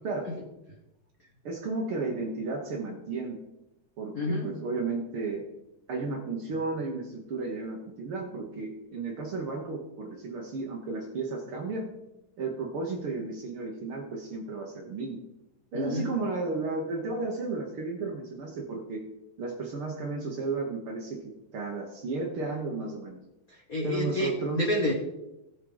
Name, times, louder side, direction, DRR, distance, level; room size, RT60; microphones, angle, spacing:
voice 1, 1.4-3.4 4.0-5.4 5.9-11.9 12.4-15.2 15.7-19.0 19.4-23.2 23.8-24.6, right 3 dB, 60° right, 1 dB, 1.5 m, -33 dB
voice 2, 4.1-4.5 15.7-16.1 23.5-24.9, left 1 dB, 75° left, -1 dB, 0.8 m, -29 dB
17.5 x 6.3 x 3.9 m, 0.94 s
omnidirectional pair, 3.8 m